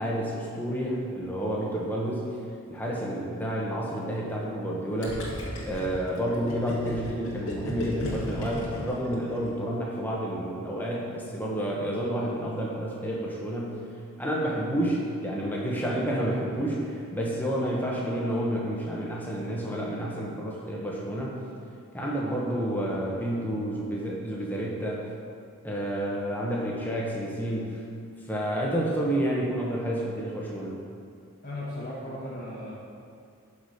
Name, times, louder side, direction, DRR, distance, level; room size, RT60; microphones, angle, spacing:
voice 1, 0.0-2.3 2.7-5.3 5.6-13.8 14.2-21.4 21.9-25.1 25.6-27.8 28.3-30.8, right 1 dB, 10° left, -3 dB, 1.1 m, -30 dB
Gurgling, 5.0-9.7, left 1 dB, 80° left, 1.8 m, -35 dB
voice 2, 31.4-32.7, left 1 dB, 45° left, -9 dB, 1.3 m, -36 dB
6.3 x 6.1 x 5.8 m, 2.3 s
head